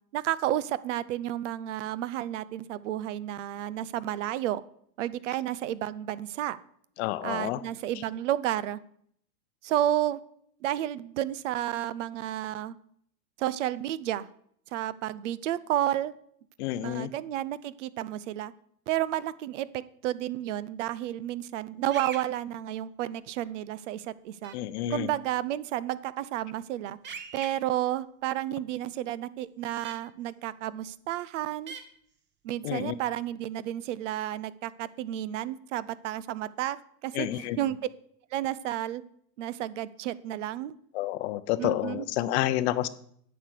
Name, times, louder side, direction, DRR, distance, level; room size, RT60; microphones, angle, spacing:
voice 1, 0.1-4.6 5.0-6.6 7.2-8.8 9.6-10.2 10.6-12.8 13.4-14.3 14.7-16.1 16.8-18.5 18.9-24.6 24.9-27.0 27.3-31.8 32.4-36.8 37.0-37.8 38.3-39.0 39.4-40.7 41.6-42.1, right 12 dB, 50° right, 18 dB, 0.6 m, -31 dB
voice 2, 7.0-7.6 16.6-17.1 24.5-25.1 32.6-32.9 37.1-37.6 40.9-42.9, left 14 dB, 40° left, 14 dB, 0.8 m, -29 dB
sound 1, 21.9-22.2 24.4-24.5 27.0-27.5 29.8-29.9 31.7-31.8, right 6 dB, 20° right, 1.1 m, -39 dB
9.4 x 6.9 x 6.5 m, 0.66 s
hypercardioid pair, 130°, 50 cm